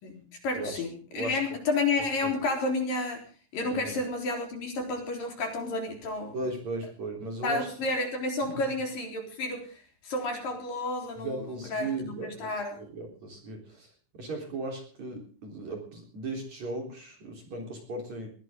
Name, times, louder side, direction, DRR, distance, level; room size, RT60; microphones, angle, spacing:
voice 1, 0.0-3.3 3.5-6.4 7.4-12.8, left 2 dB, 50° left, 3 dB, 5.2 m, -31 dB
voice 2, 3.6-4.0 6.3-7.7 8.4-8.6 11.2-12.5 12.8-13.9 14.2-18.3, right 2 dB, 40° right, 2 dB, 4.5 m, -37 dB
21.0 x 17.5 x 3.7 m, 0.41 s
omnidirectional pair, 5.4 m